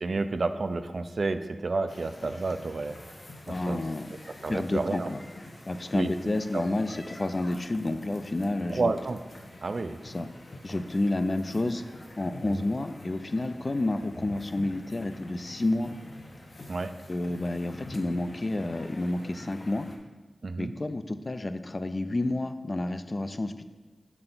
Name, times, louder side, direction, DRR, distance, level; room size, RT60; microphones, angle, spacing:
voice 1, 0.0-3.8 4.4-5.1 5.9-6.1 6.5-6.6 8.7-9.2 9.6-10.0 12.4-12.6 16.7-16.9 20.4-20.7, right 3 dB, 65° right, 9 dB, 0.3 m, -30 dB
sound 1, 1.9-20.0, left 1 dB, 55° left, 0.7 m, -47 dB
voice 2, 3.5-4.1 4.5-5.2 5.7-8.9 10.0-10.3 10.6-11.8 12.2-15.9 17.1-19.9 20.6-23.6, left 2 dB, 40° left, 10 dB, 0.3 m, -30 dB
5.9 x 4.4 x 3.8 m, 1.2 s
wide cardioid pair, 70°, 0 cm